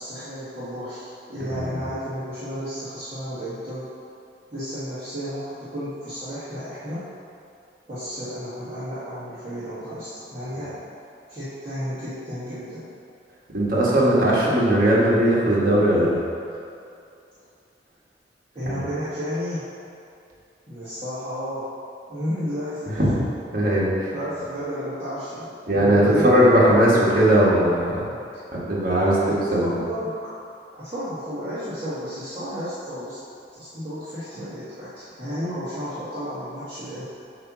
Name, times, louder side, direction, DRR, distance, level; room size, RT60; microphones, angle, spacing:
voice 1, 0.0-3.9 4.5-7.1 7.9-10.8 11.3-12.9 18.5-19.6 20.7-21.7 22.1-23.0 24.1-26.3 29.1-29.3 29.6-30.1 30.7-33.2 33.5-37.0, equal, 30° right, -15 dB, 1.6 m, -32 dB
voice 2, 1.5-1.8 13.5-16.2 18.7-18.9 23.0-23.1 23.5-24.1 25.7-28.0 28.5-29.1 29.5-29.7, right 1 dB, 50° right, -7 dB, 1.6 m, -19 dB
8.2 x 3.0 x 6.1 m, 2.6 s
head